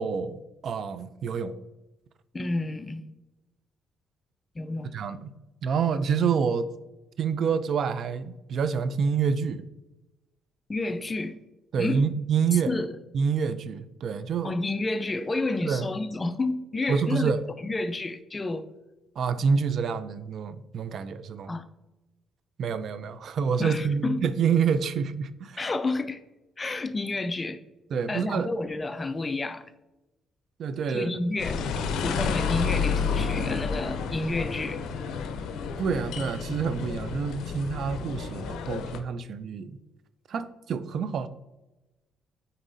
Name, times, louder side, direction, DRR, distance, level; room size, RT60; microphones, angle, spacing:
voice 1, 0.0-1.6 4.9-5.3 5.6-6.7 7.2-9.6 11.7-12.7 13.1-14.5 15.6-15.9 16.9-17.4 19.2-21.5 22.6-25.6 27.9-28.5 30.6-31.1 35.8-39.8 40.3-41.3, right 6 dB, 65° right, 0.4 m, -27 dB
voice 2, 2.3-3.1 4.6-4.9 10.7-11.4 11.8-12.0 12.5-12.9 14.4-18.7 21.5-21.7 23.6-24.3 25.6-26.2 26.6-27.6 28.1-29.7 30.9-31.6 32.0-34.8 39.6-39.8, left 2 dB, 25° left, 0.4 m, -30 dB
sound 1, 31.4-39.0, left 5 dB, 85° left, 0.6 m, -30 dB
9.1 x 4.1 x 2.7 m
cardioid pair, 90°, 0 cm